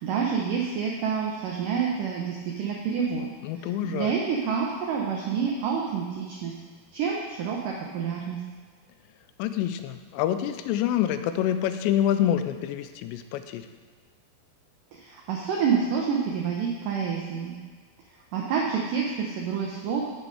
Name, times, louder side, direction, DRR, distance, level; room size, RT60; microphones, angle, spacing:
voice 1, 0.0-3.3 3.6-6.5 6.9-8.4 14.9-17.6 18.3-20.0, right 6 dB, 85° right, -2 dB, 1.8 m, -28 dB
voice 2, 3.4-4.1 9.4-13.6, left 11 dB, 90° left, 10 dB, 2.8 m, -26 dB
7.7 x 6.8 x 4.8 m, 1.5 s
omnidirectional pair, 4.9 m